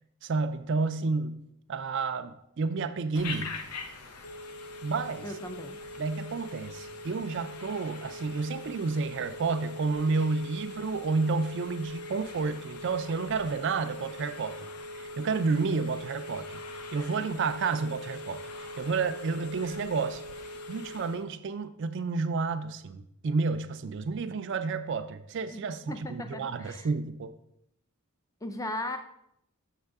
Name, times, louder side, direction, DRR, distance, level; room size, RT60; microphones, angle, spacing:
voice 1, 0.2-1.4 1.7-3.5 4.8-5.3 6.0-16.6 16.9-20.2 20.7-27.3, right 4 dB, 55° right, 9 dB, 0.4 m, -30 dB
Telephone, 3.1-21.2, left 2 dB, 90° left, 0.7 m, -42 dB
voice 2, 5.2-5.8 25.5-26.9 28.4-29.0, left 1 dB, 15° left, 7 dB, 0.4 m, -37 dB
6.5 x 5.9 x 3.5 m, 0.77 s
head